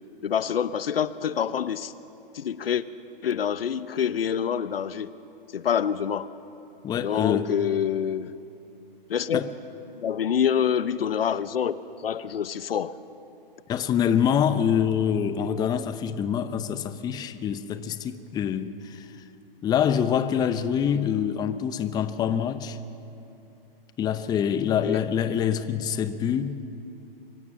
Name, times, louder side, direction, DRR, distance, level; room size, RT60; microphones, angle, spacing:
voice 1, 0.2-1.9 2.3-2.8 3.2-5.1 5.5-6.3 7.0-8.3 9.1-9.4 9.9-11.7 12.0-13.0 24.7-25.0, left 8 dB, 80° left, 0.8 m, -26 dB
voice 2, 6.8-7.5 9.3-9.5 13.7-19.1 19.6-22.8 24.0-26.6, left 8 dB, 15° left, 0.6 m, -25 dB
24.0 x 15.5 x 7.3 m
hypercardioid pair, 125°, 29 cm